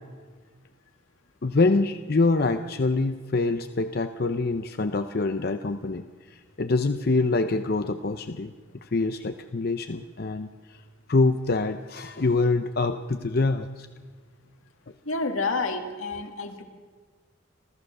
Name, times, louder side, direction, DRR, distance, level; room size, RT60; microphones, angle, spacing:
voice 1, 1.4-6.0 6.6-8.5 8.9-10.5 11.1-13.9, left 3 dB, 45° left, 9 dB, 0.6 m, -25 dB
voice 2, 15.1-16.6, left 3 dB, 80° left, 5 dB, 2.2 m, -29 dB
30.0 x 13.5 x 6.6 m, 1.5 s
head